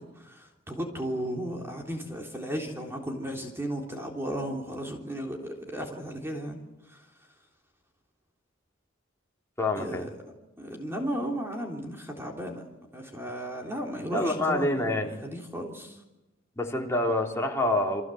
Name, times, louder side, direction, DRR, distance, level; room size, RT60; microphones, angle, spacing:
voice 1, 0.0-7.1 9.8-10.1 10.6-12.6 12.9-15.0 15.2-16.0, equal, 15° right, 1 dB, 3.5 m, -35 dB
voice 2, 9.6-10.1 14.1-15.2 16.6-18.0, left 1 dB, 15° left, 0 dB, 3.5 m, -27 dB
30.0 x 24.5 x 7.9 m, 1.0 s
head